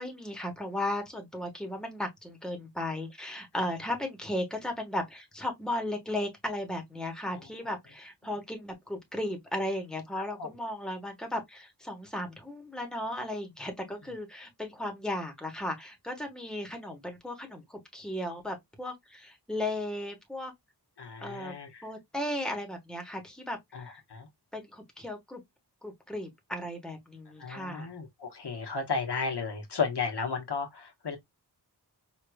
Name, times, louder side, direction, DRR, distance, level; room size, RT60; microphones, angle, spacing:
voice 1, 0.0-20.5 21.2-21.6 21.8-23.6 24.5-25.4 25.8-27.9, left 1 dB, ahead, 1.3 m, -35 dB
voice 2, 21.0-21.9 23.7-24.3 27.4-31.2, left 5 dB, 75° left, 1.2 m, -34 dB
5.1 x 2.9 x 2.3 m
wide cardioid pair, 80°, 40 cm